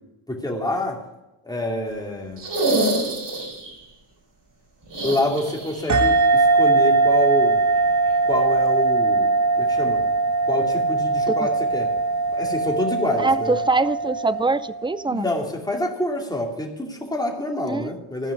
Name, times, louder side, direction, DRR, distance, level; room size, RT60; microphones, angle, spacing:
voice 1, 0.3-1.0 1.4-2.4 5.0-7.6 8.3-9.3 9.6-10.1 10.5-11.9 12.3-13.5 15.1-18.3, left 1 dB, 10° left, 2.6 m, -27 dB
quiet zombie moans, 2.4-3.8 4.9-6.1 6.3-6.4 8.1-8.2, right 2 dB, 60° right, 5.0 m, -26 dB
sound 1, 5.9-14.9, right 3 dB, 35° right, 1.2 m, -20 dB
voice 2, 13.2-15.3 17.7-17.9, right 3 dB, 10° right, 0.4 m, -23 dB
14.5 x 5.4 x 9.6 m
wide cardioid pair, 90°, 49 cm